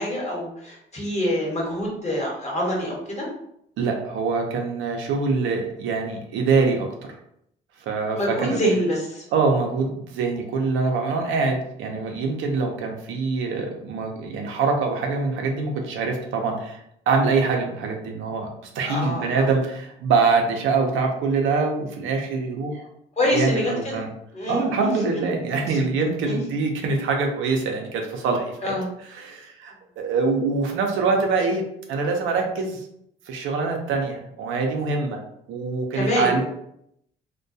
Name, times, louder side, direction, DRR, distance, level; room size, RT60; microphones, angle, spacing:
voice 1, 0.0-3.3 8.1-9.2 18.8-19.5 23.2-23.9 24.3-24.9 25.7-25.8 26.2-26.4 28.6-28.9 35.9-36.3, equal, 35° left, -3 dB, 1.0 m, -26 dB
voice 2, 3.8-6.9 7.9-8.6 9.3-16.8 17.1-18.5 18.8-22.8 23.3-24.1 24.5-28.8 29.1-31.6 31.9-32.8 33.3-35.2 35.5-36.6, right 4 dB, 85° right, 2 dB, 0.5 m, -24 dB
2.2 x 2.2 x 2.6 m, 0.73 s
cardioid pair, 90°, 20 cm